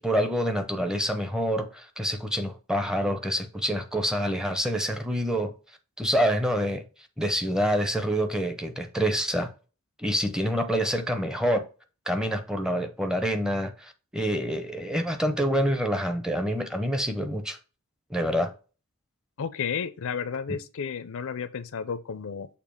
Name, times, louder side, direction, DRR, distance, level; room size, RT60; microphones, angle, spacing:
voice 1, 0.0-5.5 6.0-6.8 7.2-9.5 10.0-11.7 12.1-17.6 18.1-18.5, equal, 5° right, 0.6 m, -27 dB
voice 2, 19.4-22.5, left 6 dB, 65° left, 0.5 m, -32 dB
6.7 x 2.9 x 5.1 m
head